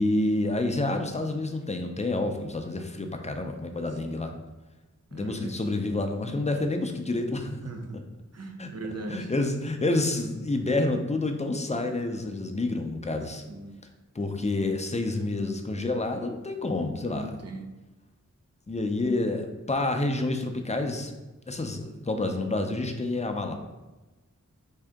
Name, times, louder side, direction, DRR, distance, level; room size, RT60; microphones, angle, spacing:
voice 1, 0.0-4.3 5.1-7.6 7.9-8.0 8.6-8.7 9.1-13.4 14.1-17.3 18.7-21.1 21.5-23.5, left 2 dB, 20° left, 5 dB, 0.5 m, -28 dB
voice 2, 3.8-4.1 5.1-5.7 7.6-8.0 8.3-9.3 13.5-13.8 17.0-17.7, right 2 dB, 55° right, 3 dB, 0.6 m, -39 dB
3.6 x 2.7 x 3.4 m, 1.1 s
wide cardioid pair, 60°, 31 cm